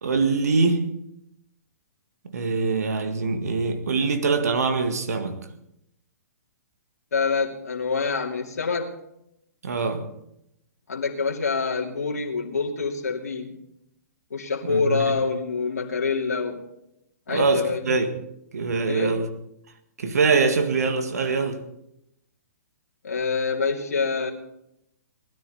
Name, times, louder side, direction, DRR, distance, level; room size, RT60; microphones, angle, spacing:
voice 1, 0.0-0.9 2.3-5.5 9.6-10.1 14.7-15.1 17.3-18.1 18.5-19.3 20.0-21.7, right 4 dB, 65° right, 1.9 m, -23 dB
voice 2, 7.1-8.9 10.9-13.6 14.3-16.6 17.3-17.8 18.8-19.1 23.0-24.3, left 4 dB, 65° left, 2.7 m, -26 dB
19.5 x 13.5 x 4.3 m
figure-of-eight pair, 120°, 9 cm